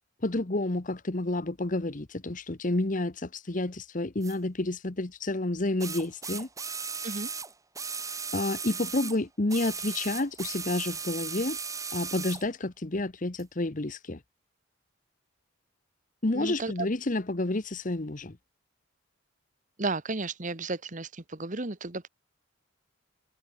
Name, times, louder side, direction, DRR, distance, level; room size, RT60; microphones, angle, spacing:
voice 1, 0.2-6.5 8.3-11.6 11.9-14.2 16.2-18.4, left 2 dB, 40° left, 1.1 m, -30 dB
sound 1, 4.2-4.4 5.8-9.2 9.5-12.5 13.4-13.5, right 5 dB, 15° right, 2.9 m, -36 dB
voice 2, 16.3-16.9 19.8-22.1, right 3 dB, 40° right, 1.5 m, -33 dB
head